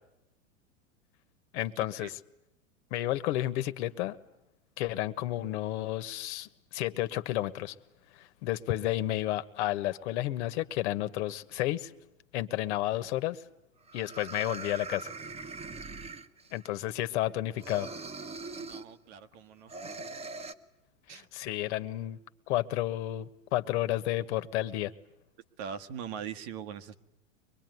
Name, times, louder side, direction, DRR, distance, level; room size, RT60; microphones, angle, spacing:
voice 1, 1.5-2.2 2.9-4.2 4.8-7.7 8.1-11.9 12.3-13.4 13.9-15.1 16.5-17.9 21.1-22.2 22.5-24.9, left 14 dB, 60° left, 12 dB, 1.6 m, -31 dB
sound 1, 13.3-13.4 13.9-16.7 17.6-18.9 19.7-20.5, right 4 dB, 15° right, 1.3 m, -41 dB
voice 2, 18.6-19.7 21.1-21.3 25.6-27.0, right 8 dB, 55° right, 10 dB, 1.7 m, -41 dB
24.5 x 21.0 x 9.5 m, 0.90 s
hypercardioid pair, 110°, 39 cm